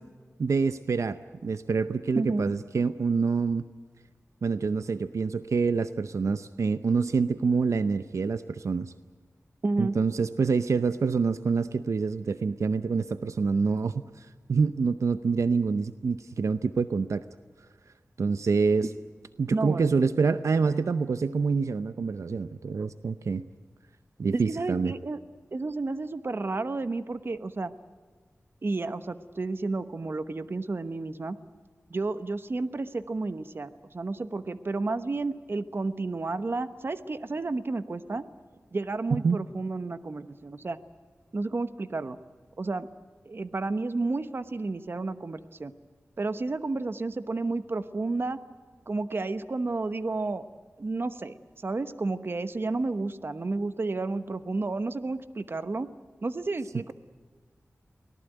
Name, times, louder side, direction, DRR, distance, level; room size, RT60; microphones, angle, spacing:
voice 1, 0.4-3.6 4.4-8.9 9.8-17.2 18.2-18.9 19.4-23.4 24.2-24.9 39.1-39.4, right 5 dB, 80° right, 12 dB, 0.6 m, -26 dB
voice 2, 2.1-2.5 9.6-10.0 19.5-19.9 24.3-25.2 25.5-27.7 28.6-31.4 31.9-38.2 38.7-40.8 41.3-42.2 42.6-42.9 43.2-45.7 46.2-48.4 48.9-50.4 50.8-55.9 56.2-56.9, right 3 dB, 45° right, 12 dB, 1.0 m, -31 dB
24.0 x 18.0 x 9.2 m, 1.5 s
wide cardioid pair, 95°, 5 cm